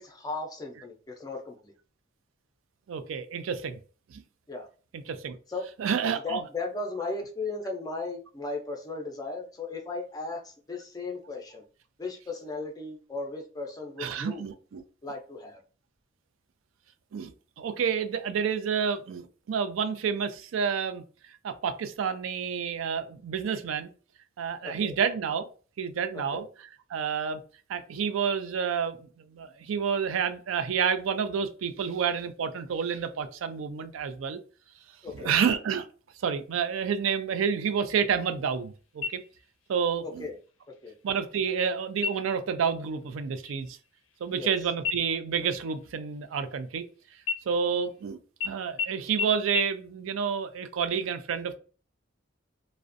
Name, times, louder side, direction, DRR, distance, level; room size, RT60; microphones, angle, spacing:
voice 1, 0.0-1.7 4.5-4.7 5.5-5.7 6.2-11.6 12.0-14.4 15.0-15.6 24.6-24.9 26.3-26.5 35.0-35.4 40.2-40.4 40.8-40.9 44.3-44.5, left 3 dB, 20° left, 0.4 m, -36 dB
voice 2, 2.9-3.8 4.9-5.3 5.8-6.4 14.0-14.8 17.1-17.3 17.6-21.0 21.4-23.9 24.4-25.5 25.8-26.5 26.9-27.4 27.7-34.4 35.1-35.9 36.2-39.2 39.7-40.3 41.0-43.7 44.2-46.8 47.5-48.2 48.4-51.6, right 7 dB, 90° right, 0.4 m, -29 dB
sound 1, 39.0-39.7 40.1-40.2 40.7-41.2 41.9-42.5 42.9-43.1 43.4-44.5 44.8-46.8 47.2-48.0 48.4-48.5 48.8-48.9 49.2-49.3 49.5-49.6, left 5 dB, 80° left, 0.4 m, -34 dB
2.4 x 2.1 x 2.5 m
head